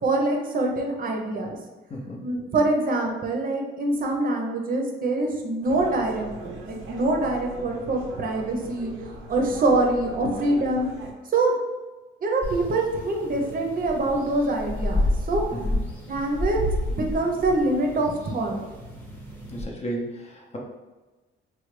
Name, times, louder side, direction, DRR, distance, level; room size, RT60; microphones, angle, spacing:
voice 1, 0.0-1.6 2.2-8.9 9.3-10.9 11.3-11.5 12.2-15.4 16.1-16.6 16.9-18.6, right 2 dB, 45° right, 1 dB, 0.6 m, -25 dB
voice 2, 1.9-2.2 15.6-15.8 19.5-20.6, right 1 dB, 35° left, -1 dB, 0.7 m, -33 dB
sound 1, 5.6-11.1, right 2 dB, 85° right, 0.5 m, -40 dB
sound 2, 12.4-19.6, left 1 dB, 10° left, 1.0 m, -30 dB
3.2 x 2.2 x 3.1 m, 1.2 s
cardioid pair, 90°, 20 cm